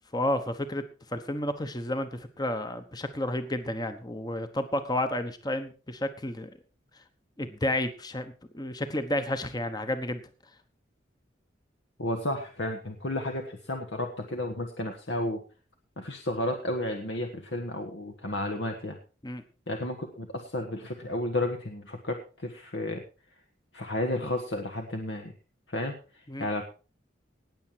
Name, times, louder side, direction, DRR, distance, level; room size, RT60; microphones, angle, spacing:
voice 1, 0.1-6.5 6.9-7.0 7.4-10.2 19.2-19.4 26.3-26.5, left 1 dB, 20° left, 9 dB, 1.1 m, -31 dB
voice 2, 12.0-15.4 16.0-19.0 19.7-23.0 23.7-25.3 25.7-26.7, left 1 dB, 70° left, 4 dB, 1.5 m, -32 dB
18.5 x 7.3 x 4.6 m, 0.35 s
head